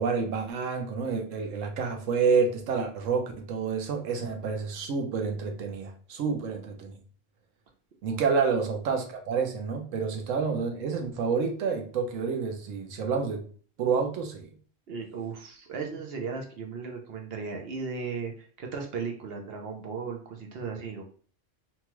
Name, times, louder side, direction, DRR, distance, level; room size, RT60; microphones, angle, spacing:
voice 1, 0.0-7.0 8.0-13.4 13.8-14.5, right 5 dB, 90° right, 3 dB, 1.0 m, -28 dB
voice 2, 14.9-21.1, right 5 dB, 60° right, 2 dB, 0.8 m, -36 dB
2.9 x 2.3 x 3.0 m, 0.43 s
omnidirectional pair, 1.3 m